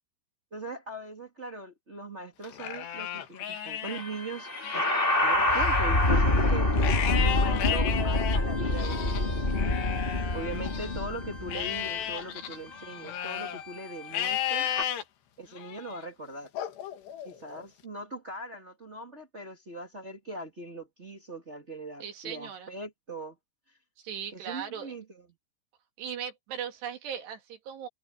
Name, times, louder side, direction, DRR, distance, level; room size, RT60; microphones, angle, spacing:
voice 1, 0.5-4.9 5.2-6.7 7.2-9.8 10.3-14.7 15.4-16.5 17.2-23.3 24.3-25.2, right 2 dB, 35° right, 1.0 m, -40 dB
Livestock farm animals working animals, 2.4-4.0 4.5-11.0 11.5-13.6 14.1-15.0 15.6-16.0 16.6-17.6, left 10 dB, 70° left, 4.0 m, -34 dB
sound 1, 3.8-14.8, left 1 dB, 15° left, 1.9 m, -27 dB
voice 2, 22.0-22.7 24.0-24.9 26.0-27.9, right 8 dB, 70° right, 4.4 m, -38 dB
omnidirectional pair, 5.2 m